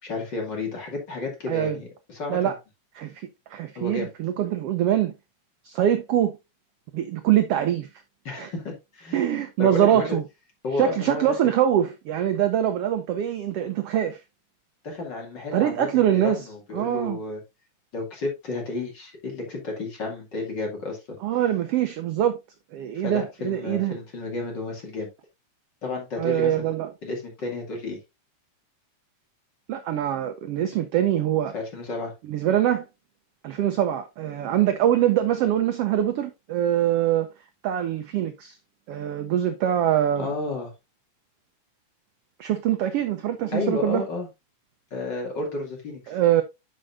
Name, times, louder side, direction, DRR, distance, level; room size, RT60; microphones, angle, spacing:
voice 1, 0.0-2.5 3.7-4.1 8.2-9.2 9.6-10.2 10.6-11.5 14.8-17.4 17.9-21.2 22.9-25.1 25.8-26.7 27.0-28.0 31.5-32.1 40.2-40.7 43.5-44.3 44.9-46.2, left 3 dB, 40° left, 2.6 m, -32 dB
voice 2, 1.5-1.8 2.3-2.6 3.0-3.1 3.5-5.1 5.6-6.4 6.9-7.9 8.3-8.5 9.1-10.2 10.7-14.2 15.5-16.4 16.7-17.2 21.2-22.4 22.7-24.0 26.2-26.9 29.7-31.5 32.3-32.8 33.4-37.3 37.6-38.6 38.9-40.3 42.4-44.0 46.1-46.4, right 11 dB, 75° right, 1.4 m, -23 dB
11.5 x 5.4 x 2.5 m
omnidirectional pair, 3.5 m